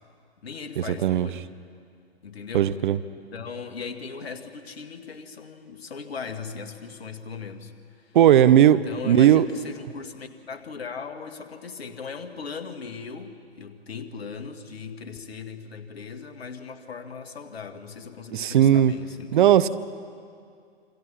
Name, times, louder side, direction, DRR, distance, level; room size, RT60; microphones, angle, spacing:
voice 1, 0.4-1.4 2.2-2.7 3.3-8.2 8.7-19.6, left 5 dB, 65° left, 8 dB, 2.0 m, -38 dB
voice 2, 2.5-3.0 8.1-9.4 18.3-18.9 19.3-19.7, right 11 dB, 50° right, 15 dB, 0.9 m, -17 dB
27.5 x 26.0 x 5.7 m, 2.2 s
figure-of-eight pair, 120°, 33 cm